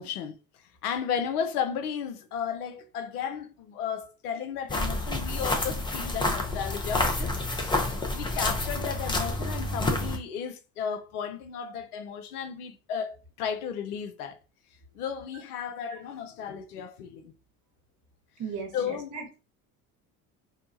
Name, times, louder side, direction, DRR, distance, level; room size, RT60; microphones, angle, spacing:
voice 1, 0.0-14.4 14.9-17.3 18.7-19.2, left 7 dB, 85° left, 0.6 m, -34 dB
sound 1, 4.7-10.2, left 2 dB, 10° left, 0.5 m, -29 dB
voice 2, 18.4-19.4, right 5 dB, 40° right, 1.0 m, -37 dB
2.7 x 2.2 x 2.6 m
hypercardioid pair, 65°, 44 cm